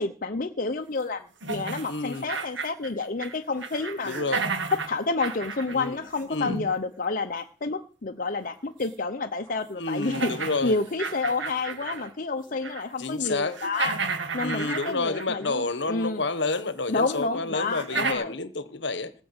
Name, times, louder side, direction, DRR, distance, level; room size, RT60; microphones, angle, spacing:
voice 1, 0.0-4.2 4.7-10.3 10.6-13.9 14.3-16.2 16.9-18.3, left 3 dB, 45° left, 0.8 m, -29 dB
sound 1, 1.4-3.3 3.6-6.7 8.8-8.9 9.5-9.6 10.0-12.1 12.5-12.9 13.2-15.5 16.5-16.6 17.1-17.2 17.7-18.1, right 4 dB, 70° right, 1.9 m, -32 dB
voice 2, 1.9-2.3 4.0-4.4 5.7-6.0 6.3-6.6 9.8-10.8 13.0-13.6 14.4-19.1, left 3 dB, 60° left, 1.2 m, -29 dB
18.0 x 6.2 x 8.0 m
head